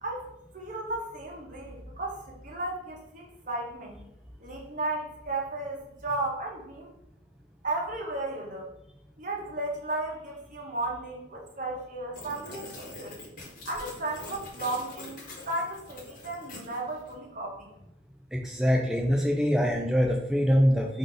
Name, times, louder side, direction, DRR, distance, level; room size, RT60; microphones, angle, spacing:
voice 1, 0.5-4.0 4.4-6.9 7.6-8.7 9.2-13.2 13.6-17.7, right 2 dB, 45° right, 0 dB, 0.9 m, -34 dB
sound 1, 12.1-17.1, left 2 dB, 50° left, 1.1 m, -44 dB
voice 2, 18.3-21.0, equal, 5° right, -2 dB, 0.4 m, -24 dB
5.0 x 2.6 x 3.8 m, 0.83 s
head